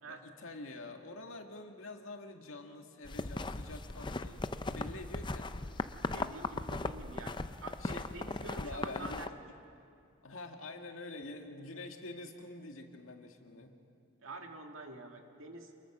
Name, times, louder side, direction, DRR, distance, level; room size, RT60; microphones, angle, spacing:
voice 1, 0.1-4.4 4.7-5.9 7.8-8.0 8.6-9.3 10.2-13.7, left 2 dB, 90° left, 4 dB, 2.0 m, -46 dB
sound 1, 3.1-9.3, left 2 dB, 25° left, 0.5 m, -38 dB
voice 2, 6.1-9.3 14.2-15.8, right 2 dB, 85° right, 3 dB, 2.2 m, -47 dB
27.5 x 21.0 x 6.2 m, 2.4 s
head